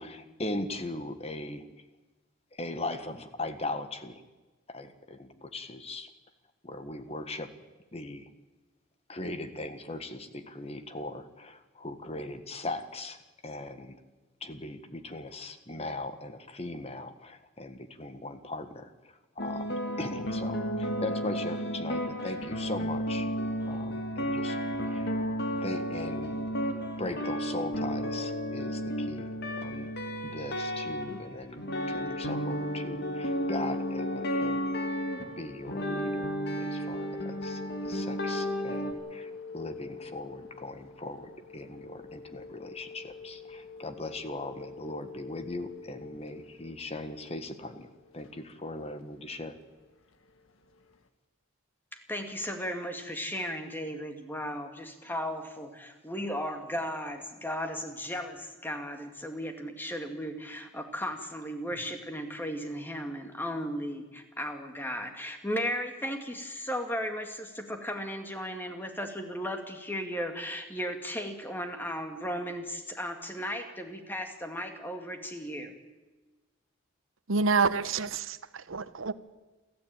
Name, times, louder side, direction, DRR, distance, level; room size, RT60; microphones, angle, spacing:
voice 1, 0.0-1.7 2.5-4.2 4.7-6.1 6.6-7.5 7.9-8.3 9.1-14.0 14.4-23.3 23.7-24.6 24.8-25.1 25.6-26.4 27.0-29.3 29.6-29.9 30.2-34.7 35.2-47.9 48.1-49.5, left 2 dB, 30° left, 1.6 m, -39 dB
sound 1, 19.4-38.9, equal, 55° left, 2.3 m, -33 dB
sound 2, 32.1-51.0, left 4 dB, 85° left, 1.5 m, -46 dB
voice 2, 52.1-75.7, equal, 10° left, 2.3 m, -35 dB
voice 3, 77.3-79.1, right 4 dB, 80° right, 1.1 m, -28 dB
28.0 x 13.5 x 9.0 m
head